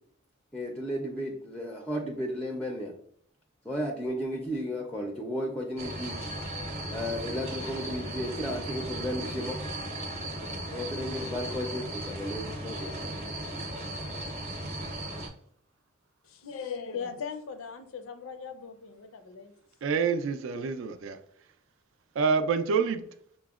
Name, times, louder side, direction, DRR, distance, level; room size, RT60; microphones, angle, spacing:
voice 1, 0.5-2.9 3.6-6.2 6.9-9.6 10.7-12.9, equal, 5° left, 0.4 m, -34 dB
sound 1, 5.8-15.3, right 1 dB, 30° right, 0.7 m, -36 dB
voice 2, 16.3-19.5, left 6 dB, 75° left, 0.5 m, -39 dB
voice 3, 19.8-21.2 22.2-23.0, right 5 dB, 65° right, 0.4 m, -27 dB
5.8 x 2.0 x 2.3 m
head